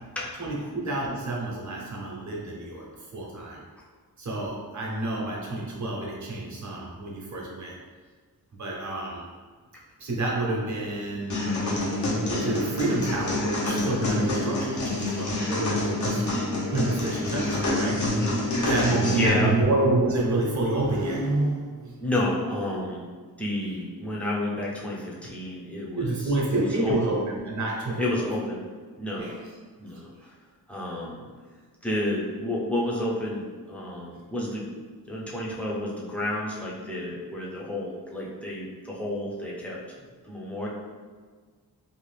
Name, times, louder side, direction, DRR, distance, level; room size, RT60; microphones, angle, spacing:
voice 1, 0.4-3.6 4.2-7.8 8.5-9.3 10.0-16.2 16.7-18.1 18.6-22.1 26.0-28.2 29.2-29.4 29.9-30.3, right 2 dB, 50° right, -3 dB, 0.7 m, -28 dB
sound 1, 11.3-19.3, left 2 dB, 50° left, 0.7 m, -27 dB
voice 2, 19.1-19.5 22.0-23.1 23.4-27.1 28.0-28.6 29.0-29.3 29.8-30.3 30.7-31.3 31.8-33.4 33.7-34.6 35.1-39.8 40.2-40.7, left 1 dB, 5° left, -5 dB, 0.5 m, -30 dB
2.6 x 2.4 x 3.2 m, 1.5 s
wide cardioid pair, 145°, 37 cm